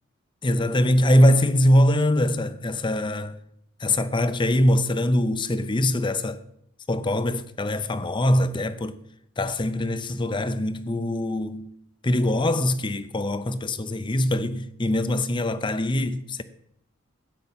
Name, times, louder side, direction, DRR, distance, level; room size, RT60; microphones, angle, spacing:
voice 1, 0.4-3.4 3.8-6.4 6.9-9.0 9.4-11.7 12.0-16.4, left 1 dB, 25° left, 0.6 m, -22 dB
12.0 x 8.8 x 5.6 m
head